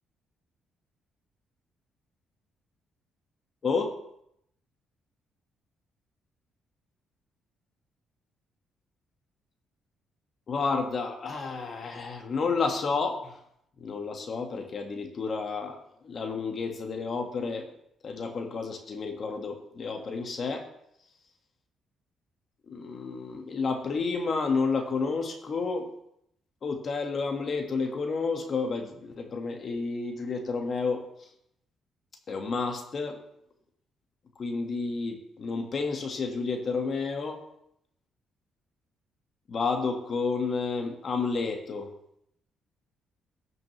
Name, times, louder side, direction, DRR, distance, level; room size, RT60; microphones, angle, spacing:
voice 1, 10.5-13.4 13.8-15.8 16.0-17.7 18.0-20.6 22.7-25.9 26.6-31.0 32.3-33.2 34.4-37.4 39.5-41.9, left 4 dB, 50° left, 4 dB, 1.5 m, -30 dB
17.0 x 6.3 x 3.1 m, 0.75 s
cardioid pair, 90°, 0 cm